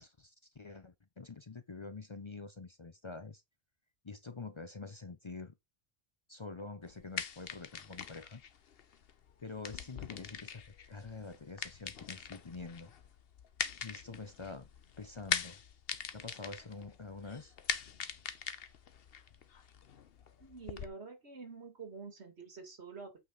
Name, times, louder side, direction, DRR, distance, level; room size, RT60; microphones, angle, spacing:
voice 1, 0.0-3.4 4.0-5.5 6.3-8.4 9.4-12.9 13.8-14.7 15.0-15.6 16.1-17.5, left 4 dB, 35° left, 0.6 m, -46 dB
sound 1, 6.8-20.9, left 7 dB, 65° left, 1.0 m, -42 dB
voice 2, 20.4-23.2, right 4 dB, 90° right, 2.4 m, -47 dB
8.5 x 5.0 x 3.8 m
omnidirectional pair, 1.1 m